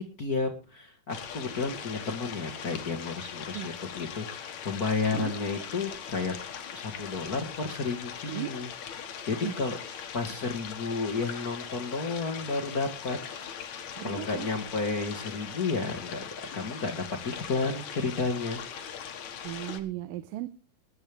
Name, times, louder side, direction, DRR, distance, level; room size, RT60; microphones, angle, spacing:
voice 1, 0.0-6.3 6.7-8.7 9.0-9.8 10.1-13.2 14.0-16.3 16.5-18.6, left 4 dB, 45° left, 3 dB, 1.3 m, -32 dB
sound 1, 1.1-19.8, left 8 dB, 60° left, 2.6 m, -40 dB
voice 2, 14.0-14.5 19.4-20.5, right 14 dB, 80° right, 13 dB, 2.5 m, -36 dB
20.0 x 11.5 x 3.4 m, 0.33 s
omnidirectional pair, 4.0 m